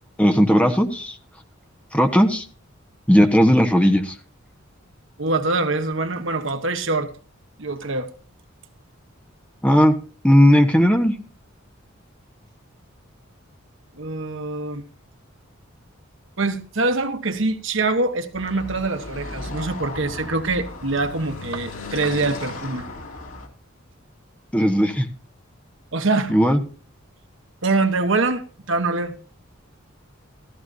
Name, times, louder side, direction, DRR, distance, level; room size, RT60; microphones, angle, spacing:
voice 1, 0.2-1.2 1.9-2.4 3.1-4.1 9.6-10.0 10.2-11.1 24.5-25.1 26.3-26.6, equal, 5° left, 1.2 m, -16 dB
voice 2, 5.2-7.1 7.6-8.1 14.0-14.9 16.4-22.9 25.9-26.3 27.6-29.1, right 3 dB, 65° right, 1.2 m, -24 dB
Car passing by / Traffic noise roadway noise, 18.3-23.5, left 2 dB, 85° left, 2.9 m, -35 dB
14.5 x 14.5 x 2.7 m
head